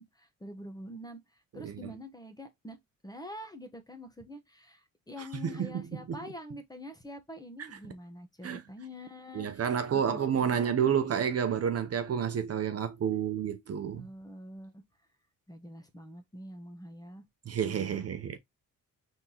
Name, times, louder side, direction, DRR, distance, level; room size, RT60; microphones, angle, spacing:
voice 1, 0.0-2.8 3.0-10.8 13.9-14.8 15.5-17.2 17.6-18.1, equal, 10° left, 1.1 m, -46 dB
voice 2, 5.2-5.8 6.1-6.2 8.4-8.6 9.3-14.1 17.5-18.4, right 8 dB, 45° right, 0.7 m, -30 dB
4.4 x 3.6 x 2.8 m
cardioid pair, 95°, 35 cm